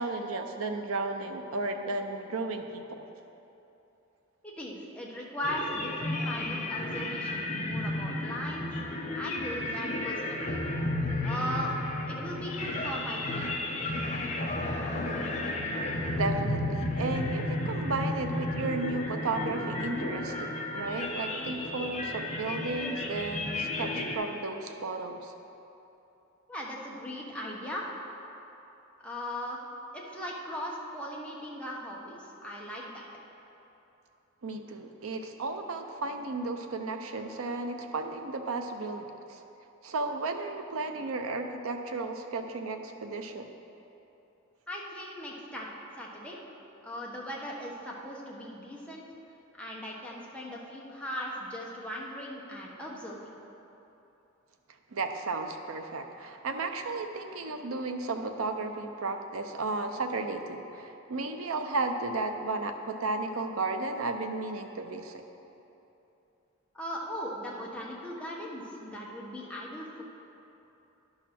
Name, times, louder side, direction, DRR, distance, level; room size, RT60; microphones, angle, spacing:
voice 1, 0.0-3.1 16.2-25.3 34.4-39.4 39.8-43.5 54.9-65.2, right 3 dB, 85° right, 6 dB, 0.6 m, -34 dB
voice 2, 4.4-10.6 11.2-11.7 12.1-13.7 26.5-27.9 29.0-29.6 29.9-33.0 44.7-45.7 46.0-46.4 46.8-49.0 49.5-53.3 66.7-70.0, equal, 5° left, -4 dB, 1.0 m, -38 dB
sound 1, 5.4-24.2, left 1 dB, 35° left, 0.9 m, -33 dB
11.0 x 4.0 x 5.9 m, 3.0 s
head